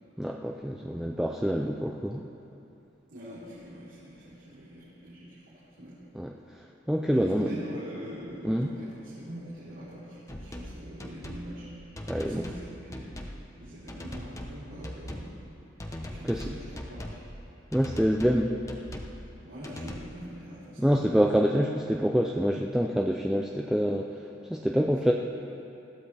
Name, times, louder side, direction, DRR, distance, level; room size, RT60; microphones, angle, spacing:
voice 1, 0.2-2.2 6.1-6.3 6.9-7.5 8.4-8.7 12.1-12.4 16.2-16.5 17.7-18.6 20.8-24.1 24.5-25.1, equal, 5° right, 0 dB, 0.5 m, -26 dB
voice 2, 3.1-5.9 7.1-13.2 13.6-15.3 16.1-17.2 19.4-21.3, equal, 90° right, -11 dB, 3.9 m, -43 dB
sound 1, 10.3-10.7 11.0-11.5 12.0-12.6 12.9-13.4 13.9-14.6 14.8-15.3 15.8-17.2 17.7-18.4 18.7-19.2 19.6-20.0, left 1 dB, 15° left, 1.0 m, -39 dB
20.5 x 15.0 x 3.4 m, 2.7 s
head